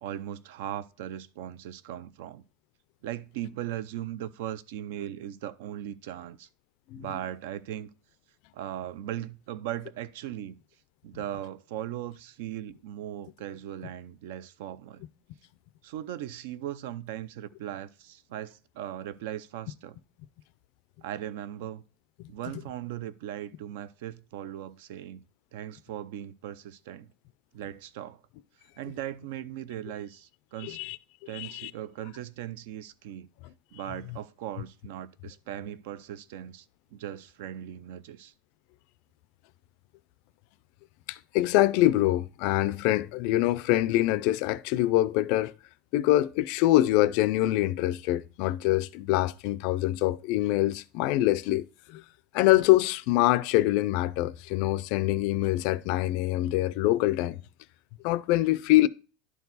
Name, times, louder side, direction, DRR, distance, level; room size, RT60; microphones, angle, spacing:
voice 1, 0.0-2.4 3.0-6.5 7.0-7.9 8.5-10.6 11.0-15.0 15.8-20.0 21.0-21.8 22.3-25.2 25.5-27.1 27.5-28.2 28.8-30.8 31.3-33.3 33.7-36.7 36.9-38.3, right 11 dB, 60° right, 0.5 m, -38 dB
voice 2, 30.6-31.0 31.3-31.7 41.1-45.5 45.9-52.0 52.3-57.4 58.0-58.9, left 16 dB, 45° left, 0.4 m, -24 dB
11.0 x 4.6 x 4.0 m
supercardioid pair, 180°, 0 cm